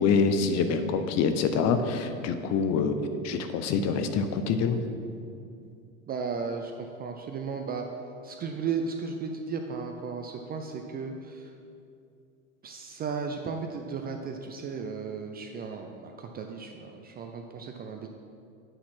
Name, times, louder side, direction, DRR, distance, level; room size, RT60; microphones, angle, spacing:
voice 1, 0.0-3.0 3.2-4.8, left 5 dB, 40° left, 8 dB, 0.7 m, -25 dB
voice 2, 6.1-7.9 8.2-11.5 12.6-18.1, right 5 dB, 25° right, 4 dB, 0.4 m, -35 dB
8.8 x 4.2 x 5.8 m, 2.5 s
hypercardioid pair, 100°, 43 cm